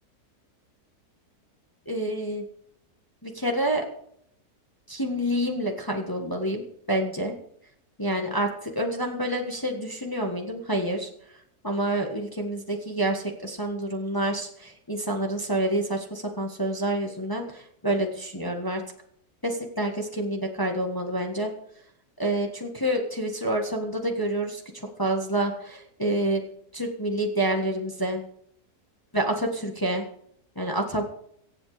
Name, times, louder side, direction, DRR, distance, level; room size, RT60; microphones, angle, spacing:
voice 1, 1.9-2.4 3.2-3.8 4.9-7.3 8.0-11.1 11.6-18.8 19.4-21.5 22.2-24.6 25.0-26.4 26.7-28.3 29.1-30.0 30.5-31.0, right 1 dB, 15° left, 2 dB, 1.6 m, -28 dB
23.5 x 8.0 x 5.0 m, 0.70 s
omnidirectional pair, 1.6 m